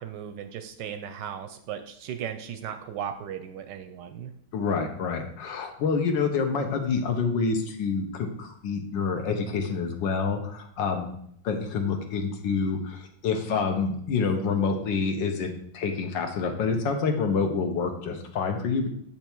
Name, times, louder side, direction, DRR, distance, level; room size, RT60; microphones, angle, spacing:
voice 1, 0.0-4.3, right 8 dB, 75° right, 8 dB, 1.1 m, -36 dB
voice 2, 4.5-11.1 11.4-18.9, left 5 dB, 70° left, 5 dB, 1.5 m, -27 dB
7.1 x 4.6 x 4.4 m, 0.68 s
omnidirectional pair, 2.2 m